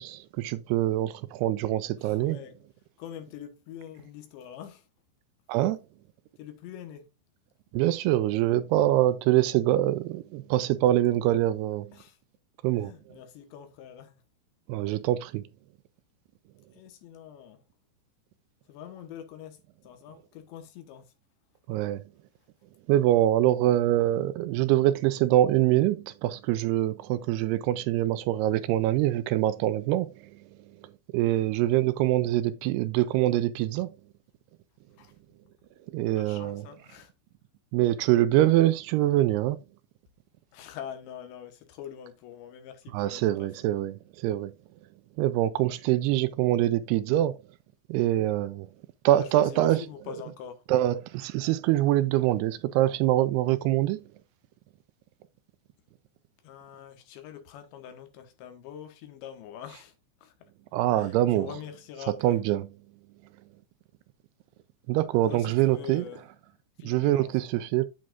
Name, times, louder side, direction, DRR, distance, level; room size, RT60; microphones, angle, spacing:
voice 1, 0.0-2.4 5.5-5.8 7.7-11.9 12.6-12.9 14.7-15.4 21.7-22.0 22.9-30.3 31.1-33.9 35.9-36.6 37.7-39.6 42.9-44.5 45.2-47.3 47.9-48.7 49.1-49.8 50.7-54.0 60.7-61.5 62.2-62.7 64.9-66.0 66.8-67.8, right 14 dB, 85° right, 2.4 m, -24 dB
voice 2, 2.0-2.6 3.0-4.9 6.4-7.1 11.9-12.2 12.8-14.2 16.7-17.6 18.7-19.6 19.8-21.1 35.0-35.1 36.1-37.1 40.5-43.5 49.2-50.6 56.4-59.9 60.2-60.3 60.9-62.4 65.3-66.3 66.8-67.3, left 9 dB, 80° left, 3.5 m, -44 dB
8.6 x 7.7 x 2.5 m
omnidirectional pair, 5.1 m